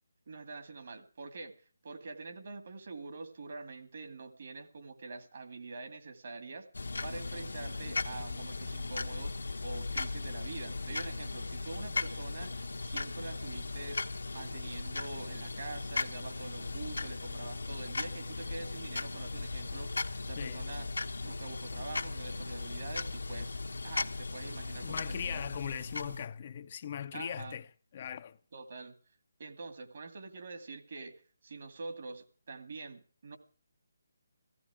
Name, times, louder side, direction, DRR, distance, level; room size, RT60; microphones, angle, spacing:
voice 1, 0.3-1.6 1.8-14.0 14.3-20.9 21.2-23.6 23.8-25.4 27.1-27.6 28.5-28.9 29.4-31.1 31.4-33.4, right 3 dB, 55° right, 2.3 m, -45 dB
sound 1, 6.7-26.3, left 3 dB, 75° left, 1.2 m, -37 dB
voice 2, 24.8-27.7 27.9-28.4, left 8 dB, 40° left, 0.6 m, -39 dB
15.5 x 15.5 x 4.9 m
figure-of-eight pair, 150°, 0 cm